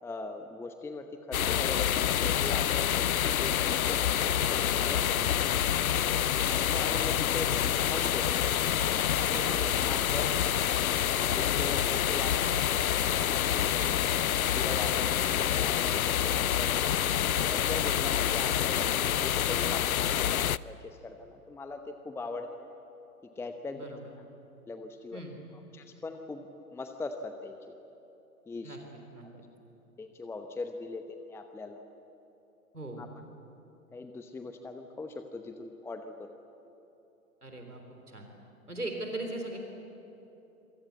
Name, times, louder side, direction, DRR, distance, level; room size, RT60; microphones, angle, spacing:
voice 1, 0.0-4.1 4.7-5.3 6.5-8.3 9.8-10.3 11.2-12.7 13.0-13.8 14.3-17.1 17.5-20.4 20.6-22.7 23.2-23.8 24.7-25.2 25.7-27.6 28.5-28.8 30.0-31.8 33.0-33.1 33.9-36.3, left 3 dB, 5° left, 6 dB, 0.9 m, -41 dB
sound 1, 1.3-20.6, left 10 dB, 70° left, 0.6 m, -27 dB
voice 2, 4.9-5.3 9.3-9.7 13.7-13.9 23.8-24.0 25.1-25.4 28.6-28.8 29.1-29.3 32.7-33.0 37.4-37.8 38.1-38.3 38.7-39.6, right 2 dB, 90° right, 3 dB, 3.8 m, -39 dB
27.0 x 24.5 x 8.5 m, 3.0 s
figure-of-eight pair, 105°, 44 cm